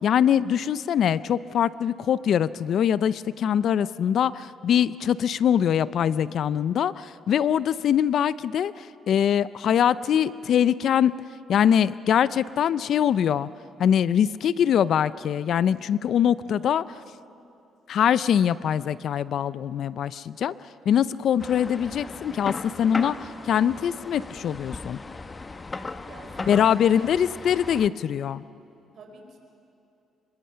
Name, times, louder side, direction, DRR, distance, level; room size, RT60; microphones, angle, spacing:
voice 1, 0.0-11.1 11.5-13.5 13.8-16.8 17.9-20.5 20.9-25.0 26.5-28.4, left 9 dB, 70° left, 17 dB, 0.5 m, -23 dB
sound 1, 21.4-27.9, left 3 dB, 30° left, 0.9 m, -37 dB
voice 2, 26.1-27.0 28.9-29.4, right 4 dB, 65° right, 3 dB, 4.3 m, -46 dB
26.0 x 23.5 x 5.7 m, 2.7 s
cardioid pair, 90°, 0 cm